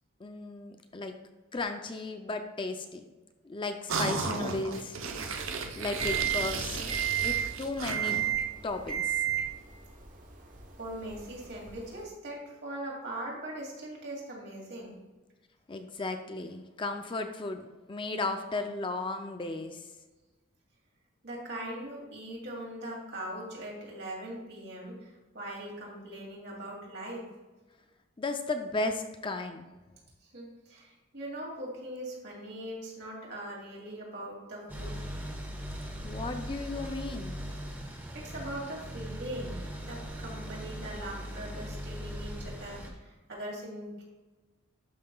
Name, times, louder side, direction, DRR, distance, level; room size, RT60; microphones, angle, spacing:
voice 1, 0.2-1.1 1.5-3.0 3.4-5.0 5.8-6.8 7.2-8.2 8.6-9.4 15.7-19.9 28.2-29.7 36.0-37.4, left 2 dB, 25° left, 6 dB, 0.4 m, -35 dB
sound 1, 3.9-8.4, right 4 dB, 85° right, 0.7 m, -35 dB
sound 2, 6.0-12.0, right 10 dB, 40° right, 0.9 m, -33 dB
voice 2, 10.8-15.0 21.2-27.3 30.2-35.0 38.1-44.0, right 1 dB, 55° right, -3 dB, 2.6 m, -41 dB
sound 3, 34.7-42.9, equal, 10° right, 1.1 m, -39 dB
12.0 x 5.6 x 2.3 m, 1.2 s
head